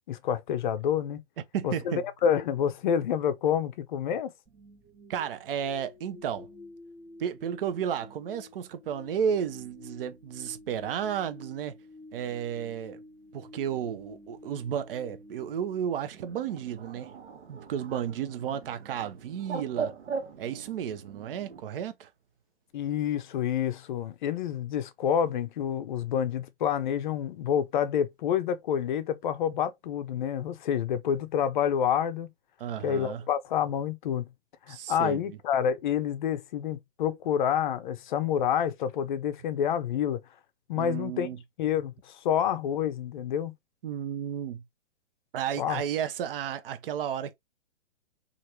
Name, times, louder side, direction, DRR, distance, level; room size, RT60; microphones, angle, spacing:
voice 1, 0.1-1.2 1.6-4.3 22.7-32.3 32.8-34.3 34.7-40.2 40.7-41.3 41.6-43.5 45.6-45.8, left 9 dB, 45° left, 0.5 m, -28 dB
voice 2, 1.5-2.0 5.1-6.5 7.2-11.8 12.1-13.0 13.3-17.1 17.5-19.9 20.4-22.1 32.6-33.2 34.7-35.4 40.7-41.4 43.8-44.6 45.3-47.3, right 8 dB, 55° right, 0.6 m, -33 dB
sound 1, 4.5-16.6, left 2 dB, 10° right, 0.6 m, -51 dB
Bird, 16.1-21.6, right 5 dB, 80° right, 1.0 m, -40 dB
3.1 x 2.5 x 2.8 m
hypercardioid pair, 130°, 34 cm